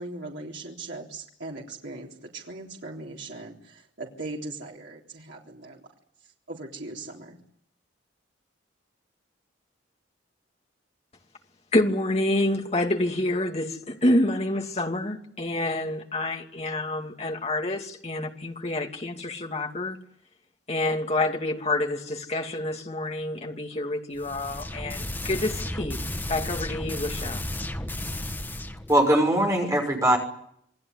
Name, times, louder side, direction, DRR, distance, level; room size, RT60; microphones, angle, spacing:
voice 1, 0.0-5.8 6.5-7.4, right 2 dB, 75° right, 3.7 m, -39 dB
voice 2, 11.7-20.0 20.7-26.0 26.3-27.4, left 1 dB, 35° left, 2.6 m, -27 dB
sound 1, 24.2-29.0, left 1 dB, 10° left, 1.6 m, -33 dB
voice 3, 28.9-30.2, right 1 dB, 15° right, 6.3 m, -21 dB
28.0 x 19.5 x 9.8 m
head